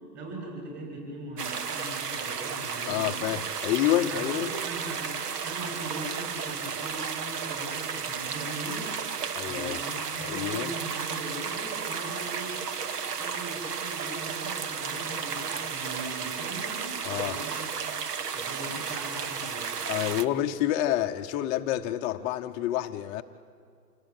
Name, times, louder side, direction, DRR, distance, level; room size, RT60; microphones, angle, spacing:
voice 1, 0.1-3.3 3.8-5.1 5.4-8.9 9.5-12.6 13.1-17.9 18.3-20.1, right 2 dB, 20° right, -1 dB, 7.7 m, -40 dB
sound 1, 1.4-20.2, right 6 dB, 70° right, 1.6 m, -33 dB
voice 2, 2.9-4.5 9.3-9.8 10.2-10.7 17.0-17.4 19.9-23.2, left 13 dB, 20° left, 5 dB, 0.7 m, -28 dB
28.0 x 21.5 x 9.0 m, 2.2 s
hypercardioid pair, 145°, 48 cm